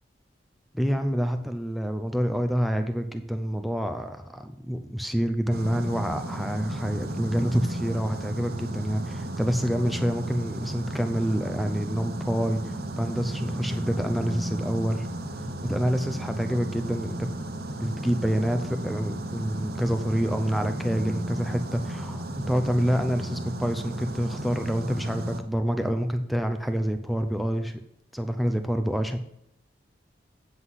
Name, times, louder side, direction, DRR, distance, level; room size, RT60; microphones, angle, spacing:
voice 1, 0.7-15.1 15.4-17.3 17.8-27.8 28.1-29.2, equal, ahead, 7 dB, 0.5 m, -27 dB
sound 1, 5.5-25.4, right 1 dB, 55° right, 0.8 m, -34 dB
8.0 x 7.9 x 5.6 m, 0.76 s
head